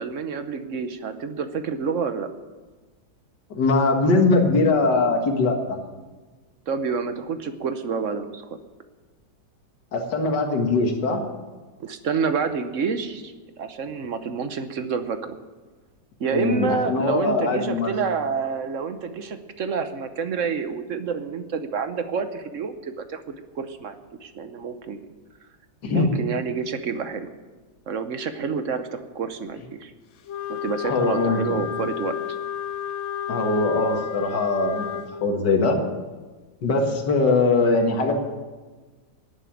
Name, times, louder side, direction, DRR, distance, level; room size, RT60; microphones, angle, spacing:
voice 1, 0.0-2.3 6.7-8.4 11.8-15.4 16.2-23.2 23.5-25.0 25.9-27.3 27.9-29.9 30.5-32.2, right 5 dB, 55° right, 9 dB, 1.0 m, -28 dB
voice 2, 3.5-5.8 9.9-11.2 16.3-17.9 25.8-26.1 30.8-31.6 33.3-35.8 36.6-38.1, left 3 dB, 65° left, 3 dB, 2.3 m, -21 dB
Wind instrument woodwind instrument, 30.3-35.1, left 10 dB, 85° left, 1.6 m, -31 dB
11.0 x 9.4 x 9.1 m, 1.3 s
omnidirectional pair, 2.0 m